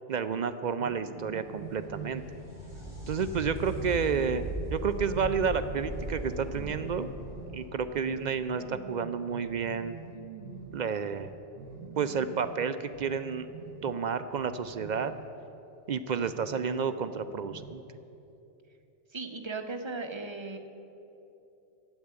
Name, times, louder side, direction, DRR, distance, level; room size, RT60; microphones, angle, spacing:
voice 1, 0.1-2.2 3.1-4.4 4.7-7.1 7.5-10.0 10.7-11.3 12.0-13.5 13.8-15.1 15.9-17.8, right 6 dB, 60° right, 11 dB, 0.5 m, -30 dB
sound 1, 0.7-15.4 16.1-18.0, right 5 dB, 90° right, 1.1 m, -45 dB
sound 2, 1.2-8.8 12.2-12.3 13.3-13.4, right 1 dB, 40° left, 3.6 m, -39 dB
voice 2, 19.1-20.6, right 3 dB, 25° right, 5 dB, 0.8 m, -37 dB
12.0 x 8.2 x 9.5 m, 2.9 s
omnidirectional pair, 1.2 m